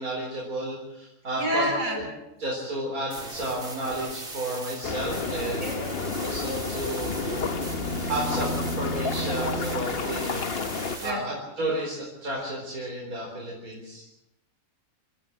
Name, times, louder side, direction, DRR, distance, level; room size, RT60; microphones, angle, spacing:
voice 1, 0.0-2.1 2.4-5.6 6.2-7.5 8.1-10.4 11.0-14.2, right 1 dB, 85° right, -3 dB, 4.7 m, -32 dB
voice 2, 1.4-2.0 5.6-6.3 11.0-11.2, equal, 65° right, -1 dB, 7.4 m, -29 dB
sound 1, 3.1-11.1, right 2 dB, 40° right, 2.8 m, -39 dB
sound 2, 4.8-11.0, left 5 dB, 45° left, 1.2 m, -31 dB
sound 3, 6.5-10.4, right 1 dB, 70° left, 8.3 m, -35 dB
28.5 x 13.5 x 7.7 m, 0.91 s
omnidirectional pair, 1.5 m